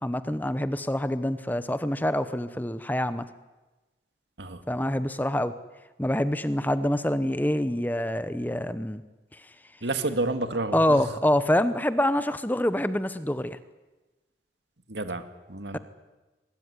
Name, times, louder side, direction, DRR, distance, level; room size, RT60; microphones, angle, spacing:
voice 1, 0.0-3.3 4.7-5.5 6.0-9.0 9.3-9.4 10.7-13.6, left 1 dB, 10° left, 13 dB, 0.8 m, -26 dB
voice 2, 9.8-11.1 14.9-15.8, right 2 dB, 90° right, 9 dB, 2.1 m, -30 dB
23.0 x 21.0 x 9.7 m, 1.2 s
head